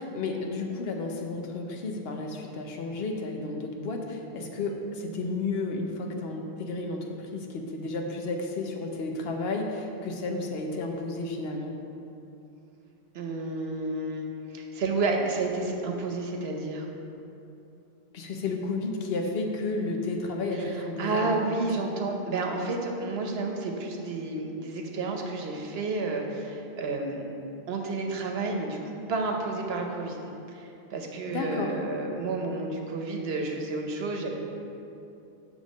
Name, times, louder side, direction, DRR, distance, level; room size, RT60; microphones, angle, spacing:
voice 1, 0.0-11.7 18.1-21.3 31.3-31.7, left 3 dB, 75° left, 2 dB, 1.0 m, -32 dB
sound 1, 4.7-8.0, right 4 dB, 60° right, 0.7 m, -49 dB
voice 2, 13.1-14.3 14.5-16.9 20.5-27.4 27.7-34.3, right 3 dB, 80° right, 2 dB, 1.0 m, -31 dB
7.2 x 3.6 x 6.3 m, 2.8 s
omnidirectional pair, 1.0 m